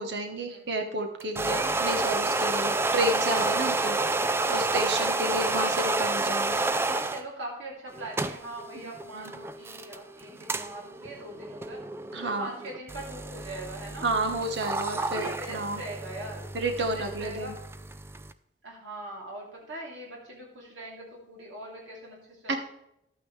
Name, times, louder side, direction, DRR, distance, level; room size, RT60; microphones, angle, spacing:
voice 1, 0.0-4.0 4.5-6.6 9.1-9.2 12.1-12.5 14.0-15.8 16.5-17.5 22.5-22.6, right 2 dB, 70° right, 4 dB, 1.2 m, -31 dB
sound 1, 1.2-7.2 7.9-18.3, right 2 dB, 15° right, 0.3 m, -30 dB
voice 2, 6.5-11.8 12.2-14.1 15.0-16.5 16.9-17.6 18.6-22.6, right 1 dB, 90° right, -2 dB, 3.0 m, -42 dB
12.0 x 9.0 x 3.2 m, 0.81 s
head